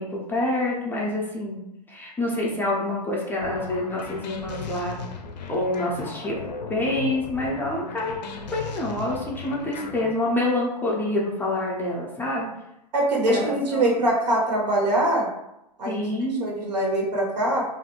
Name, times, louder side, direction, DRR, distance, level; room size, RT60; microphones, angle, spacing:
voice 1, 0.0-1.6 1.9-5.0 5.5-6.4 6.7-8.2 8.5-12.5 13.2-13.9 15.8-16.5, left 1 dB, 10° left, -3 dB, 0.4 m, -27 dB
sound 1, 3.4-10.1, left 4 dB, 85° left, 0.4 m, -37 dB
voice 2, 12.9-15.3 15.8-16.0 16.4-17.6, right 1 dB, 80° right, -3 dB, 1.0 m, -23 dB
2.4 x 2.1 x 2.8 m, 0.86 s
hypercardioid pair, 115°, 21 cm